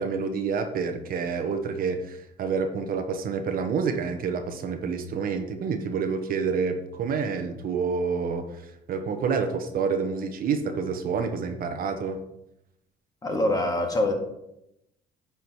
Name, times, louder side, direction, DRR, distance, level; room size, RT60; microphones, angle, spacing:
voice 1, 0.0-12.2, right 5 dB, 60° right, 6 dB, 1.1 m, -28 dB
voice 2, 13.2-14.1, left 1 dB, 20° left, 2 dB, 1.9 m, -24 dB
10.0 x 5.0 x 4.8 m, 0.83 s
cardioid pair, 110°, 17 cm